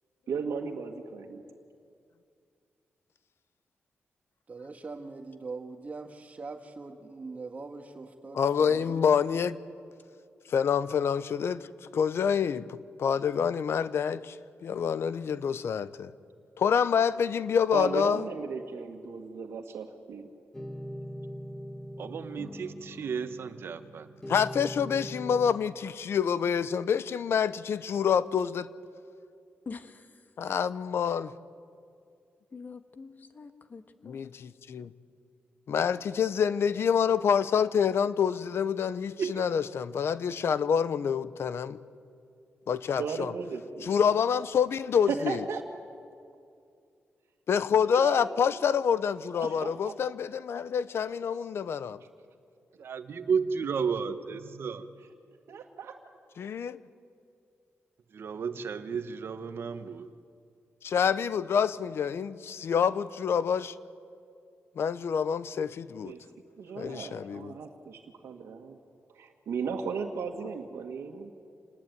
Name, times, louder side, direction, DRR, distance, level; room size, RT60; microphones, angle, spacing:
voice 1, 0.3-1.4 17.7-20.3 42.9-44.0 45.1-45.6 47.9-48.3 49.4-49.9 55.5-56.0 66.0-66.2 66.6-68.8 69.1-71.3, right 5 dB, 85° right, 1.9 m, -36 dB
voice 2, 4.5-9.1, right 3 dB, 35° right, 1.7 m, -42 dB
voice 3, 8.3-9.6 10.5-11.7 11.9-14.4 14.6-16.1 16.6-18.2 24.3-28.7 30.4-31.3 34.0-34.9 35.7-41.8 42.7-43.3 43.8-45.4 47.5-52.0 56.4-56.8 60.8-63.7 64.8-66.1 66.8-67.6, left 7 dB, 65° left, 0.8 m, -27 dB
sound 1, 20.5-25.5, equal, 10° left, 1.4 m, -41 dB
voice 4, 22.0-24.1 39.2-39.4 52.8-54.9 58.1-60.1, right 6 dB, 60° right, 1.3 m, -33 dB
voice 5, 29.6-30.2 32.5-34.2, left 4 dB, 45° left, 1.5 m, -45 dB
27.5 x 20.0 x 9.4 m
wide cardioid pair, 130°, 4 cm